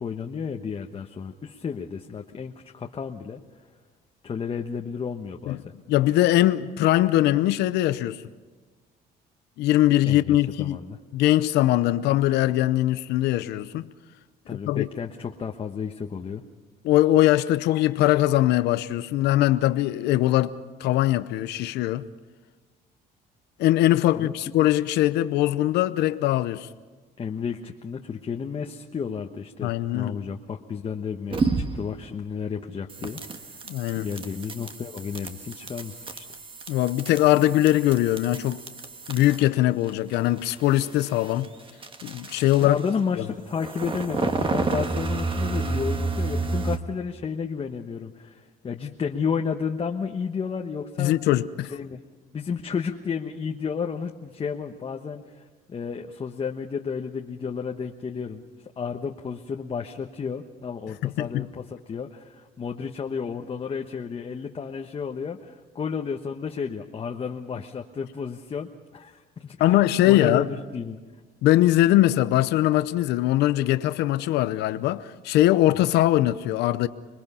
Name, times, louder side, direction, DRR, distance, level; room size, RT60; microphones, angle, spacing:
voice 1, 0.0-3.4 4.2-5.6 10.0-11.0 14.5-16.4 24.2-24.3 27.2-33.6 34.0-36.4 42.6-51.1 51.7-52.0 52.3-58.4 58.8-71.0 75.8-75.9, left 6 dB, 35° left, 1.1 m, -32 dB
voice 2, 5.9-8.2 9.6-10.8 11.1-13.9 14.5-14.9 16.8-20.5 20.8-22.1 23.6-26.7 29.6-30.2 33.7-34.1 36.7-38.6 39.1-41.5 42.0-42.8 43.2-43.3 51.0-51.7 61.0-61.5 69.6-70.4 71.4-76.9, left 14 dB, 80° left, 0.7 m, -21 dB
sound 1, 31.3-32.0 32.9-39.6 39.8-43.0 43.5-46.8, right 3 dB, 30° right, 1.5 m, -31 dB
26.5 x 21.5 x 5.6 m
cardioid pair, 110°, 17 cm